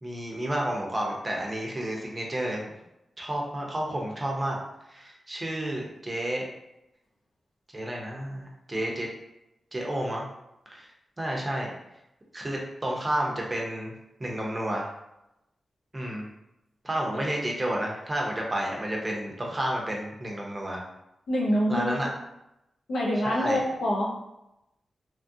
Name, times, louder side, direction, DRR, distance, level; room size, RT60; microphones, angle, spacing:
voice 1, 0.0-2.7 3.2-4.6 4.9-6.5 7.7-9.1 9.7-10.2 10.7-10.9 11.2-11.7 12.3-13.9 14.2-14.9 15.9-16.3 16.8-20.8 21.7-22.1 23.2-23.6, right 1 dB, 25° right, -1 dB, 0.6 m, -31 dB
voice 2, 21.3-22.1 22.9-24.1, equal, 85° left, -4 dB, 0.7 m, -26 dB
3.0 x 2.4 x 2.6 m, 0.88 s
wide cardioid pair, 100°, 0 cm